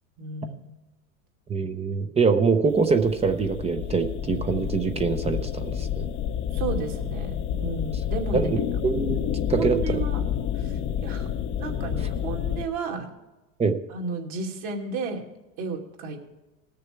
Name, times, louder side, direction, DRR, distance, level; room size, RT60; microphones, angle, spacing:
voice 1, 0.2-0.8 6.5-8.5 9.5-10.2 10.5-11.3 11.6-13.1 13.9-15.2 15.6-16.2, right 4 dB, 50° right, 0 dB, 2.6 m, -33 dB
voice 2, 1.5-6.1 8.3-9.2 9.5-10.0 13.6-13.8, right 4 dB, 15° right, 7 dB, 0.6 m, -24 dB
sound 1, 2.7-12.7, left 9 dB, 30° left, 0.7 m, -29 dB
18.5 x 6.7 x 4.6 m, 1.1 s
hypercardioid pair, 115°, 42 cm